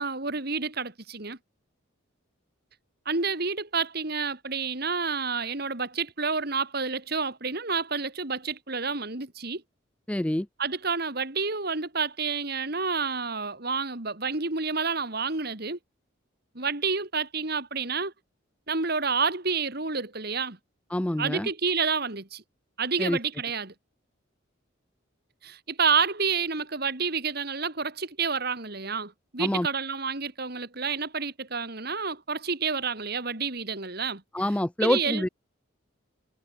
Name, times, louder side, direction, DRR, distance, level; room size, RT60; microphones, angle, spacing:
voice 1, 0.0-1.4 3.1-9.6 10.6-15.8 16.5-18.1 18.7-20.6 21.2-22.4 22.8-23.7 25.4-34.2 34.8-35.2, right 5 dB, 50° right, 2.5 m, -29 dB
voice 2, 10.1-10.5 20.9-21.5 23.0-23.2 29.4-29.7 34.3-35.3, left 1 dB, 5° left, 0.4 m, -26 dB
head